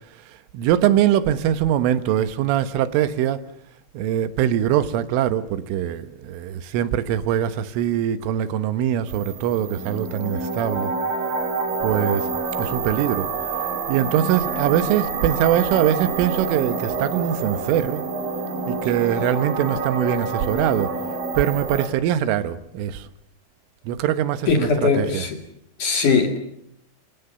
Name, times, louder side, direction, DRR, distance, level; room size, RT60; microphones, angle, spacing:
voice 1, 0.5-3.4 4.0-10.9 11.8-12.3 12.6-13.3 13.9-18.0 18.7-20.9 21.4-23.1 23.9-25.3, right 11 dB, 80° right, 3.7 m, -22 dB
sound 1, 9.1-21.9, right 4 dB, 50° right, 3.9 m, -27 dB
voice 2, 24.5-25.4 25.8-26.4, left 4 dB, 50° left, 3.0 m, -20 dB
28.0 x 23.0 x 7.0 m
omnidirectional pair, 5.6 m